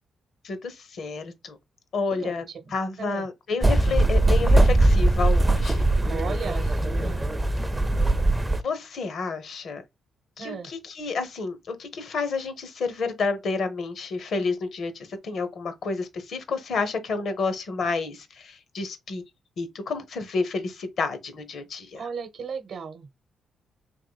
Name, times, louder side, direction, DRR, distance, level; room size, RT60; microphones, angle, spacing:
voice 1, 0.4-1.6 1.9-5.9 8.6-9.8 10.4-19.2 19.6-22.1, left 4 dB, 65° left, 0.8 m, -30 dB
voice 2, 2.6-3.2 6.0-7.3 10.4-10.7 22.0-23.1, right 5 dB, 65° right, 0.8 m, -35 dB
sound 1, 3.6-8.6, right 2 dB, 20° right, 0.4 m, -20 dB
3.5 x 2.9 x 2.3 m
supercardioid pair, 60°, 0 cm